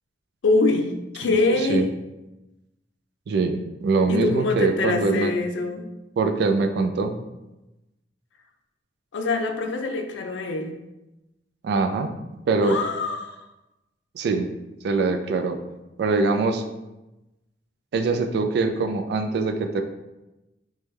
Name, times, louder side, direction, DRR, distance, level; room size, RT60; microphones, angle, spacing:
voice 1, 0.4-1.9 4.1-5.9 9.1-10.8 12.6-13.5, left 3 dB, 90° left, 5 dB, 0.4 m, -24 dB
voice 2, 3.3-5.3 6.2-7.2 11.6-12.1 12.5-12.8 14.1-14.5 14.8-15.6 16.0-16.6 17.9-19.8, right 3 dB, 65° right, 6 dB, 0.3 m, -23 dB
3.3 x 2.2 x 3.1 m, 0.99 s
head